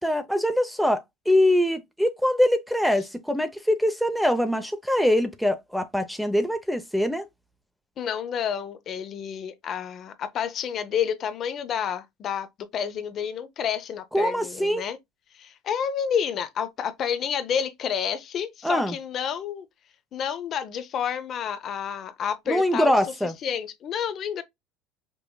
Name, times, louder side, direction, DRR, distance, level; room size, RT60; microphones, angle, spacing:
voice 1, 0.0-1.0 1.3-7.3 14.1-14.8 18.6-18.9 22.5-23.3, left 1 dB, ahead, 0.7 m, -23 dB
voice 2, 8.0-15.0 15.3-19.7 20.1-23.0 23.4-24.4, left 8 dB, 45° left, 0.7 m, -29 dB
5.3 x 2.9 x 2.3 m
supercardioid pair, 100°, 0 cm